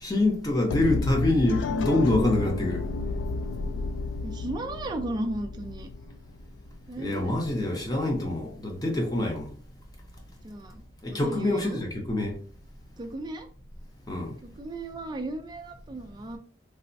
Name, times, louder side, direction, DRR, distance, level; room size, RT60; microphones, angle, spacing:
voice 1, 0.0-2.8 7.0-9.5 11.0-12.4 14.1-14.3, left 2 dB, 20° left, 0.7 m, -25 dB
sound 1, 0.7-6.7, left 3 dB, 80° left, 0.3 m, -31 dB
voice 2, 4.2-5.9 6.9-7.4 10.4-10.8 11.1-11.8 13.0-13.5 14.4-16.4, right 2 dB, 25° right, 0.3 m, -35 dB
3.2 x 2.0 x 2.5 m
head